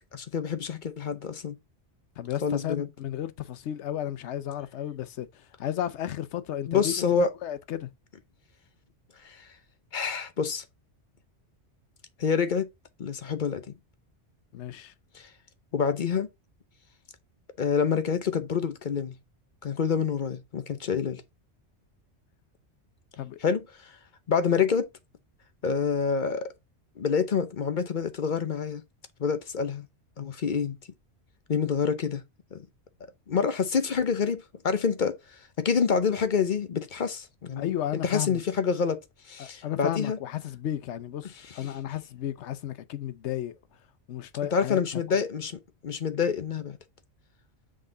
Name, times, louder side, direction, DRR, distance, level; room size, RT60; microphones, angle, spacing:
voice 1, 0.1-1.6 2.4-2.9 6.7-7.3 9.2-9.5 9.9-10.6 12.2-12.7 13.0-13.6 15.1-15.3 15.7-16.3 17.6-19.1 19.6-21.2 23.4-24.0 24.3-24.9 25.6-26.5 27.0-28.8 29.2-29.9 30.2-30.8 31.5-32.2 32.5-32.6 33.3-35.2 35.6-37.7 38.0-39.0 39.3-40.2 44.5-46.8, left 6 dB, 50° left, 0.8 m, -27 dB
voice 2, 2.2-7.9 14.5-14.9 23.2-23.4 37.6-38.4 39.4-43.5 44.1-45.2, left 11 dB, 80° left, 1.0 m, -33 dB
7.7 x 3.7 x 3.8 m
omnidirectional pair, 1.2 m